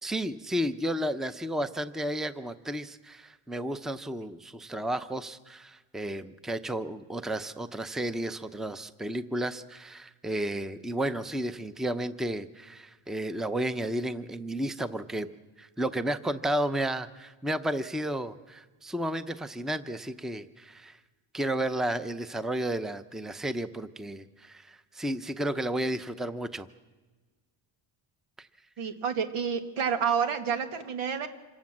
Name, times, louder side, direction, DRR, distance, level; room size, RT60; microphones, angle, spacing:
voice 1, 0.0-15.3 15.6-21.0 21.3-26.7 28.4-28.5, right 1 dB, ahead, 12 dB, 0.7 m, -32 dB
voice 2, 28.8-31.3, right 7 dB, 85° right, 7 dB, 1.9 m, -29 dB
26.5 x 17.5 x 7.4 m, 1.3 s
cardioid pair, 105°, 48 cm